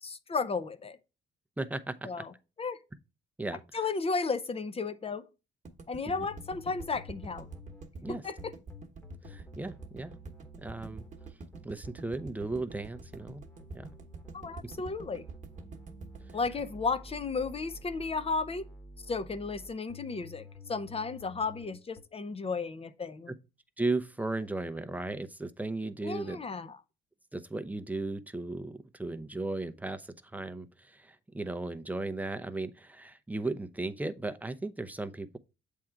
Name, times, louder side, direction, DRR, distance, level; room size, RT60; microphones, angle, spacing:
voice 1, 0.0-1.0 2.0-2.3 2.6-2.8 3.7-5.2 5.9-7.5 8.1-8.5 14.3-15.2 16.3-18.7 19.1-23.3 26.0-26.8, left 4 dB, 30° left, 0.7 m, -34 dB
voice 2, 1.6-2.1 3.4-3.6 6.1-6.3 8.0-8.2 9.2-10.1 10.6-11.0 11.6-13.4 13.7-13.9 23.3-23.4 23.8-26.4 27.3-35.4, right 2 dB, 10° right, 0.6 m, -36 dB
sound 1, 5.7-17.8, right 3 dB, 40° right, 1.1 m, -47 dB
sound 2, 6.2-22.0, equal, 10° left, 1.2 m, -50 dB
7.6 x 3.7 x 4.5 m
cardioid pair, 90°, 20 cm